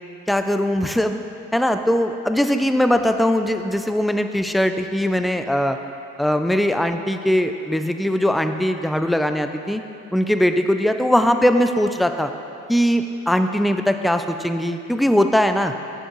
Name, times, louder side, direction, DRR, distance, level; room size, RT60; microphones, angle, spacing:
voice 1, 0.3-1.2 1.5-5.8 6.2-9.8 10.1-12.3 12.7-15.7, equal, ahead, 7 dB, 0.3 m, -20 dB
10.0 x 7.1 x 3.1 m, 2.7 s
cardioid pair, 90°, 30 cm